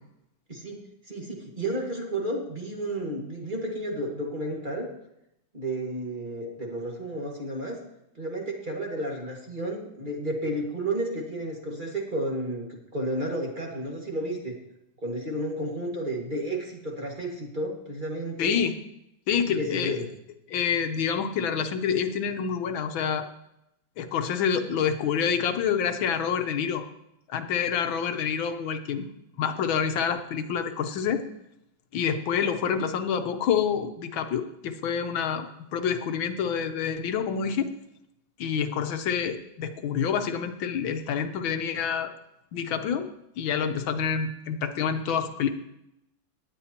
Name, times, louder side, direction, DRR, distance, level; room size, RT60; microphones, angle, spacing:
voice 1, 0.5-0.8 1.1-4.9 5.5-7.8 8.2-14.6 15.0-18.6 19.5-20.0, right 1 dB, 25° right, -1 dB, 2.0 m, -32 dB
voice 2, 18.4-18.7 19.3-20.1 20.5-23.3 24.0-26.8 27.3-29.1 29.4-31.2 31.9-37.7 38.4-42.1 42.5-43.1 43.4-45.5, left 7 dB, 85° left, 8 dB, 1.7 m, -27 dB
18.0 x 10.5 x 2.9 m, 0.83 s
omnidirectional pair, 2.1 m